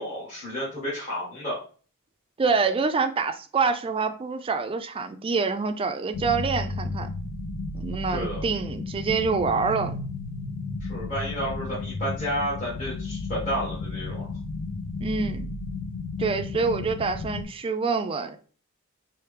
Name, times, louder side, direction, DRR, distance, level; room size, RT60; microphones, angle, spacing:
voice 1, 0.0-1.6 8.1-8.4 10.8-14.3, equal, 35° left, 1.5 m, -31 dB
voice 2, 2.4-7.1 7.7-10.0 15.0-15.5 16.2-18.4, right 4 dB, 25° right, 0.3 m, -26 dB
sound 1, 6.1-17.4, left 3 dB, 85° left, 0.5 m, -33 dB
4.4 x 2.0 x 3.3 m
head